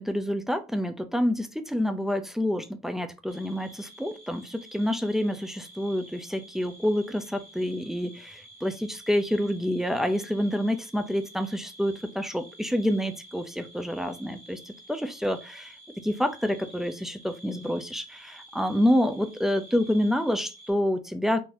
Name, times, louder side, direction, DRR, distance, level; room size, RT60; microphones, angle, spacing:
voice 1, 0.0-21.4, equal, ahead, 0.5 m, -28 dB
sound 1, 3.3-20.7, right 1 dB, 40° left, 1.5 m, -50 dB
3.9 x 2.7 x 2.5 m
cardioid pair, 110°, 17 cm